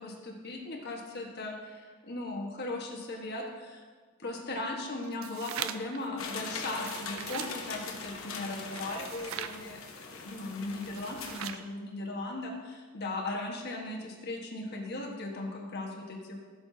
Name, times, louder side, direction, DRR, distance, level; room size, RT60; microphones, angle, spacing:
voice 1, 0.0-3.8 4.2-9.8 10.1-16.4, left 2 dB, 50° left, 0 dB, 1.5 m, -38 dB
sound 1, 5.0-6.0 6.7-7.6 8.7-9.6 10.8-11.7, right 10 dB, 65° right, 0.4 m, -40 dB
sound 2, 6.2-11.4, left 4 dB, 70° left, 1.1 m, -41 dB
15.0 x 6.9 x 2.8 m, 1.5 s
head